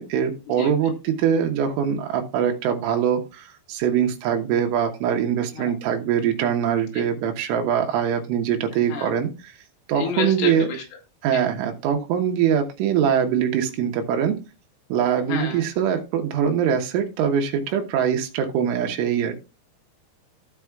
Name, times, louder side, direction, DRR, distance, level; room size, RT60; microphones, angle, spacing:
voice 1, 0.0-9.6 9.9-10.7 11.2-14.4 14.9-19.3, right 8 dB, 85° right, 4 dB, 3.6 m, -23 dB
voice 2, 10.0-10.8 11.3-11.4 15.2-15.6, left 5 dB, 80° left, 2 dB, 4.2 m, -29 dB
16.0 x 5.5 x 2.3 m, 0.29 s
omnidirectional pair, 5.5 m